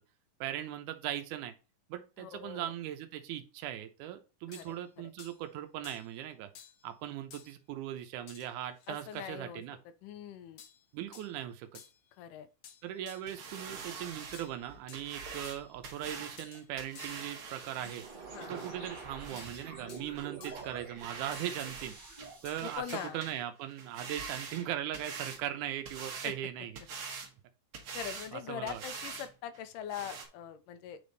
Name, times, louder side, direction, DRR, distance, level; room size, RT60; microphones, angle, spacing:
voice 1, 0.4-1.5 1.9-6.5 6.8-9.8 10.9-11.8 12.8-18.0 18.4-21.9 22.4-26.8 28.3-28.8, right 12 dB, 80° right, 2.2 m, -39 dB
voice 2, 2.2-2.7 4.6-5.1 8.9-9.6 10.0-10.6 12.2-12.5 18.3-18.5 22.6-23.2 26.2-26.3 27.9-31.0, left 9 dB, 85° left, 2.3 m, -42 dB
sound 1, 4.5-4.8 5.2-5.4 5.8-6.1 6.6-6.8 7.3-7.5 8.3-8.5 8.8-9.3 10.6-10.8 11.1-11.3 11.7-12.0 12.6-13.3 14.3-15.1 15.4-15.8 16.4-16.7 17.0-17.3 19.4-20.1 20.4-20.8 21.3-21.8 22.5-23.1, left 7 dB, 70° left, 1.5 m, -53 dB
sound 2, 13.3-19.7 20.2-20.3 20.6-20.7 21.0-21.9 22.2-23.4 23.7-25.4 25.9-26.4 26.8-27.3 27.7-28.3 28.7-29.3 29.5-29.6 29.9-30.3, right 5 dB, 55° right, 1.8 m, -44 dB
sound 3, 17.8-22.8, right 4 dB, 35° right, 0.7 m, -47 dB
9.4 x 3.5 x 4.0 m
omnidirectional pair, 3.7 m